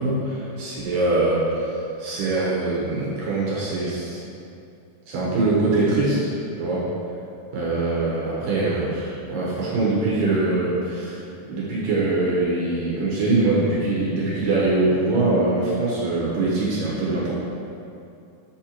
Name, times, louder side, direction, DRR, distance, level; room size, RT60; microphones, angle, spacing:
voice 1, 0.0-4.2 5.1-6.3 6.6-6.9 7.5-17.3, right 2 dB, 65° right, -6 dB, 2.5 m, -23 dB
7.7 x 4.4 x 4.3 m, 2.6 s
omnidirectional pair, 4.6 m